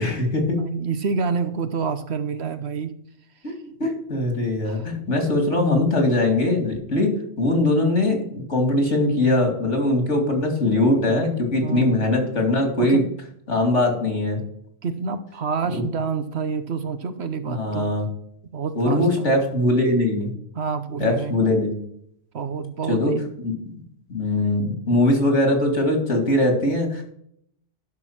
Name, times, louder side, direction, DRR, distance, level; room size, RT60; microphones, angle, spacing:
voice 1, 0.0-0.6 3.4-3.5 3.8-13.0 13.5-14.4 15.7-15.8 17.5-18.1 18.7-20.3 21.0-21.7 22.9-23.1 23.4-23.7 24.1-27.0, left 1 dB, 75° left, 4 dB, 2.9 m, -21 dB
voice 2, 0.6-2.9 4.6-4.9 11.6-12.0 12.9-13.0 14.8-17.9 18.5-19.3 20.5-21.5 22.3-23.3, right 5 dB, 65° right, 10 dB, 1.2 m, -28 dB
11.5 x 6.4 x 5.8 m, 0.68 s
omnidirectional pair, 1.2 m